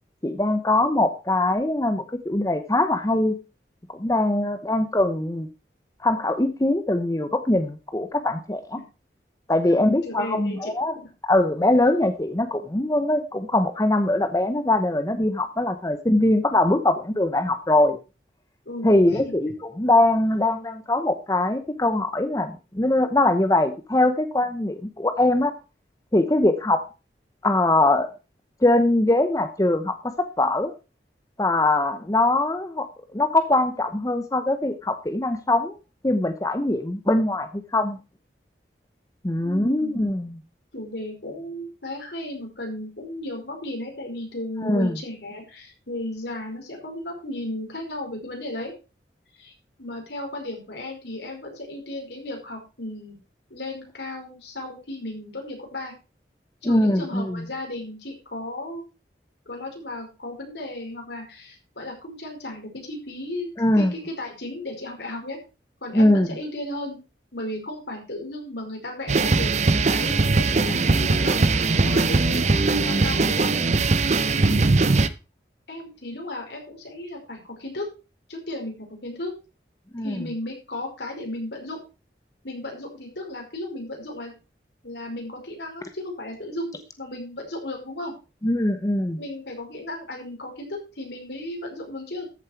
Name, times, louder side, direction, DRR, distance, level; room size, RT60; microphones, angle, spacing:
voice 1, 0.2-3.4 3.9-5.5 6.0-8.8 9.5-10.9 11.2-18.0 18.8-25.5 26.1-26.8 27.4-28.1 28.6-30.7 31.4-32.9 33.1-35.8 36.0-38.0 39.2-40.4 44.6-44.9 56.6-57.4 63.6-63.9 65.9-66.3 79.9-80.2 88.4-89.2, left 1 dB, 20° left, 9 dB, 0.8 m, -22 dB
voice 2, 10.0-10.7 18.7-19.4 39.4-40.1 40.7-48.7 49.3-49.5 49.8-53.2 53.5-55.9 56.6-58.8 59.5-63.5 63.7-65.4 65.8-67.0 67.3-69.5 69.9-71.5 71.8-74.0 74.3-75.1 75.7-77.9 78.3-79.3 80.0-81.8 82.4-84.3 84.8-88.1 89.2-92.2, left 1 dB, 80° left, 1 dB, 5.2 m, -35 dB
sound 1, 69.1-75.1, right 3 dB, 40° right, 0.7 m, -20 dB
13.5 x 7.5 x 4.5 m, 0.31 s
head